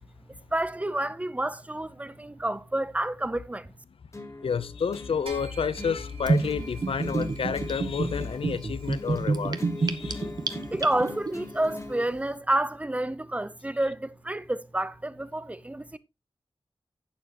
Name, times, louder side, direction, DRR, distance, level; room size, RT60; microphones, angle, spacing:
voice 1, 0.5-3.7 10.7-16.0, right 1 dB, 15° right, 0.6 m, -29 dB
sound 1, 4.1-12.1, left 2 dB, 30° left, 1.3 m, -42 dB
voice 2, 4.4-10.3, left 6 dB, 75° left, 0.6 m, -30 dB
sound 2, 5.3-10.9, right 3 dB, 85° right, 2.7 m, -48 dB
Gurgling / Bathtub (filling or washing), 6.3-11.3, right 3 dB, 45° right, 1.0 m, -28 dB
11.0 x 8.6 x 3.0 m
wide cardioid pair, 125°, 10 cm